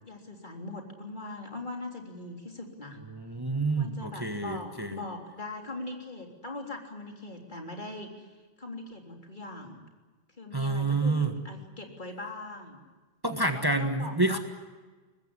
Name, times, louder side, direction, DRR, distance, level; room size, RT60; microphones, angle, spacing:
voice 1, 0.0-3.0 3.8-8.3 8.6-9.8 10.4-12.8 13.5-14.4, left 2 dB, 45° left, 2 dB, 3.7 m, -41 dB
voice 2, 3.1-5.0 10.5-11.3 13.2-14.4, right 2 dB, 20° right, 6 dB, 1.5 m, -28 dB
23.5 x 20.5 x 9.8 m, 1.3 s
omnidirectional pair, 1.1 m